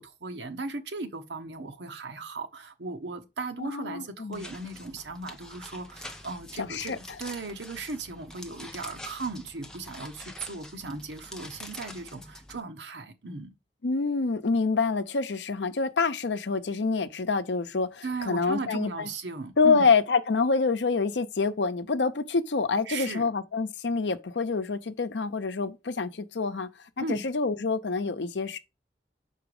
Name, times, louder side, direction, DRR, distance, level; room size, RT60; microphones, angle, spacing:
voice 1, 0.0-13.5 18.0-19.9 22.9-23.3 27.0-27.2, right 3 dB, 85° right, 1.0 m, -37 dB
voice 2, 3.6-4.4 6.6-7.0 13.8-19.1 19.6-26.7 27.0-28.6, left 4 dB, 90° left, 0.6 m, -27 dB
sound 1, 4.3-12.6, left 1 dB, 5° left, 0.6 m, -45 dB
6.0 x 4.6 x 4.8 m
head